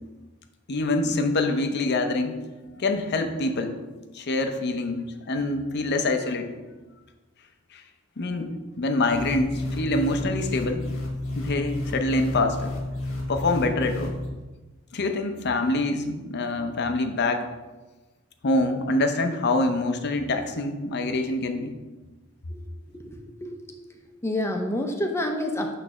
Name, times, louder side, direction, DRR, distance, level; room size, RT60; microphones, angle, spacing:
voice 1, 0.7-2.4 2.8-3.7 4.1-5.0 5.3-6.5 7.7-7.8 8.2-10.9 11.4-12.7 13.3-14.2 14.9-17.5 18.4-21.8, left 2 dB, 55° left, 6 dB, 0.6 m, -25 dB
sound 1, 9.1-14.3, left 1 dB, 90° left, 1.6 m, -31 dB
voice 2, 22.9-23.9 24.2-25.8, left 1 dB, 15° left, 3 dB, 0.7 m, -29 dB
6.3 x 3.3 x 6.0 m, 1.2 s
head